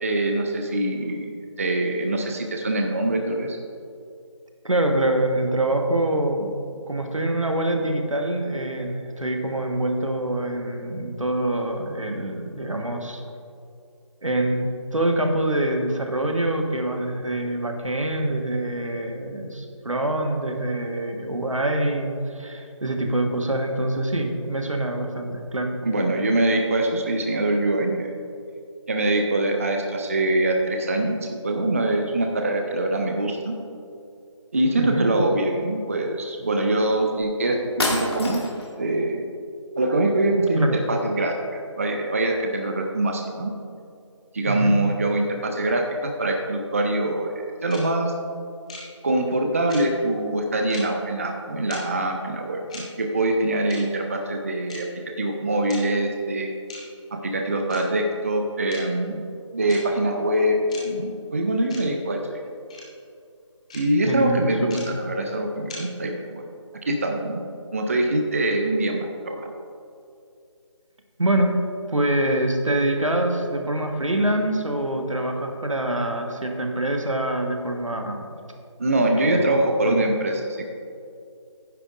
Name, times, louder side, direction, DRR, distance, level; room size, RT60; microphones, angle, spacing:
voice 1, 0.0-3.6 25.8-28.1 28.9-33.5 34.5-37.6 37.9-38.4 38.8-39.3 39.8-41.3 41.8-43.5 44.3-47.3 47.6-48.1 49.0-56.5 57.1-59.2 59.5-62.4 63.7-66.4 66.9-67.4 67.7-69.5 78.8-80.7, right 1 dB, 25° right, 3 dB, 0.5 m, -24 dB
voice 2, 4.6-6.6 6.9-13.2 14.2-25.8 34.8-35.1 40.6-40.8 44.5-44.7 64.1-64.8 71.2-71.6 71.9-78.2 79.1-79.6 79.8-80.0, right 1 dB, 90° right, 3 dB, 1.4 m, -25 dB
sound 1, 37.2-37.3 37.8-38.7, left 1 dB, 50° left, 2.2 m, -27 dB
sound 2, 47.7-47.8 48.7-48.8 49.7-49.8 50.7-50.8 51.7-51.8 52.7-52.8 53.7-53.8 54.7-54.8 55.7-55.8 56.7-56.8 57.7-57.8 58.7-58.8 59.7-59.8 60.7-60.8 61.7-61.8 62.7-62.8 63.7-63.8 64.7-64.8 65.7-65.8, left 3 dB, 10° left, 0.6 m, -38 dB
11.5 x 9.9 x 2.5 m, 2.5 s
figure-of-eight pair, 160°, 16 cm